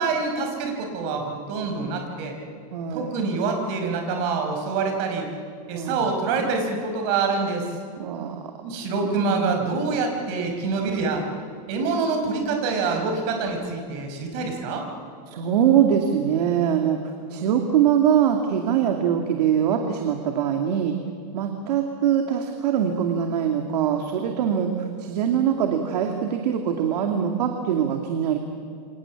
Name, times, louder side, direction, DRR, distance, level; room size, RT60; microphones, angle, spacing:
voice 1, 0.0-2.4 2.9-5.3 5.7-7.7 8.6-11.2 11.7-14.9, right 4 dB, 40° right, 4 dB, 5.0 m, -26 dB
voice 2, 2.7-3.1 5.7-6.1 8.0-8.4 9.0-9.5 15.3-17.0 17.3-20.9 21.3-28.4, right 9 dB, 70° right, 4 dB, 2.5 m, -23 dB
28.0 x 26.0 x 7.4 m, 2.4 s
supercardioid pair, 170°, 21 cm